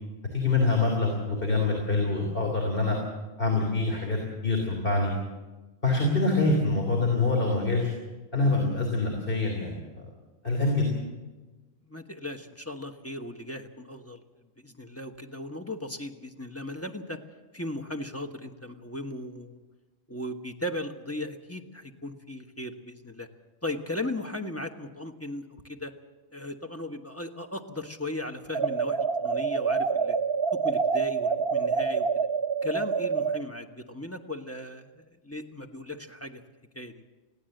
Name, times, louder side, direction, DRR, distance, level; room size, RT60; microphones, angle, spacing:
voice 1, 0.3-3.0 3.4-5.1 5.8-7.9 8.3-10.1 10.4-10.9, left 3 dB, 55° left, 0 dB, 3.6 m, -25 dB
voice 2, 11.9-14.2 14.6-17.2 17.5-19.6 20.1-23.3 23.6-25.9 26.3-30.2 30.5-32.1 32.6-36.4 36.7-37.0, left 1 dB, 15° left, 4 dB, 1.3 m, -37 dB
sound 1, 28.5-33.4, right 5 dB, 65° right, 1.0 m, -27 dB
21.0 x 16.0 x 7.9 m, 1.2 s
omnidirectional pair, 1.1 m